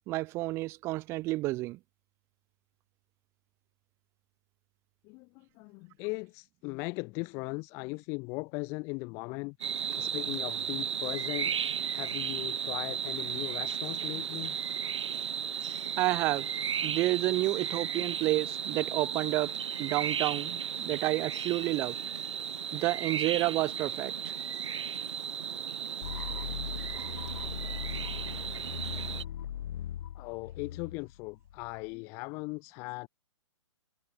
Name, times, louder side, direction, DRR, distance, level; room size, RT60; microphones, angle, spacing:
voice 1, 0.1-1.8 16.0-16.5 16.8-19.5 19.8-22.0 22.7-24.3, right 19 dB, 15° right, 0.7 m, -30 dB
voice 2, 5.0-14.6 30.1-33.1, left 29 dB, 15° left, 0.5 m, -39 dB
sound 1, 9.6-29.2, right 8 dB, 70° right, 3.3 m, -35 dB
sound 2, 26.0-31.9, left 11 dB, 50° left, 6.1 m, -40 dB
hypercardioid pair, 160°, 16 cm